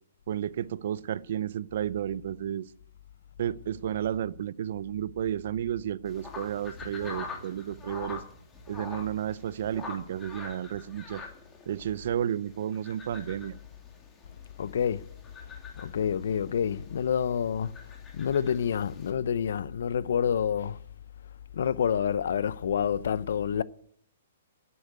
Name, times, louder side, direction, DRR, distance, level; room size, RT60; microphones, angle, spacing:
voice 1, 0.3-2.7 3.4-8.2 8.7-11.2 11.7-13.6, right 10 dB, 60° right, 0.6 m, -32 dB
sound 1, 6.0-19.1, left 4 dB, 15° left, 2.4 m, -45 dB
voice 2, 14.6-15.0 15.8-17.7 18.1-20.8 21.5-23.6, left 8 dB, 70° left, 0.6 m, -28 dB
11.5 x 8.5 x 9.3 m
hypercardioid pair, 150°, 0 cm